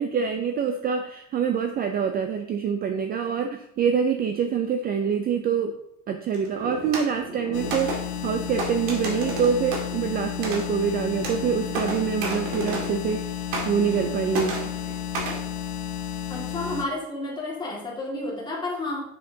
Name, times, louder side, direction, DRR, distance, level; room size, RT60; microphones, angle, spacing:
voice 1, 0.0-5.7 6.1-14.7, right 7 dB, 30° right, 6 dB, 0.4 m, -25 dB
sound 1, 6.3-13.2 13.5-14.1 14.3-15.4, right 2 dB, 80° right, 2.0 m, -33 dB
sound 2, 7.5-16.9, left 10 dB, 80° left, 0.8 m, -32 dB
voice 2, 16.3-19.0, left 2 dB, 15° left, -4 dB, 2.0 m, -31 dB
6.6 x 6.5 x 2.7 m, 0.76 s
cardioid pair, 145°, 31 cm